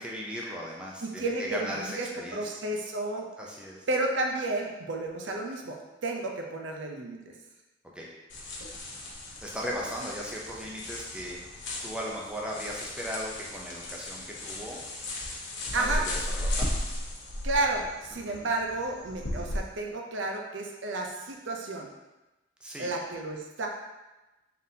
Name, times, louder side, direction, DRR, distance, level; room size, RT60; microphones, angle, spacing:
voice 1, 0.0-2.5 3.4-3.9 7.9-8.1 9.4-14.8 15.7-16.8 18.3-18.4 22.6-22.9, equal, 5° right, -4 dB, 0.5 m, -37 dB
voice 2, 1.0-3.3 3.9-7.2 15.7-16.1 17.4-21.9 22.8-23.7, right 2 dB, 85° right, 1 dB, 0.6 m, -32 dB
sound 1, 8.3-19.6, left 1 dB, 80° left, 0.9 m, -36 dB
3.9 x 3.7 x 2.7 m, 1.1 s
head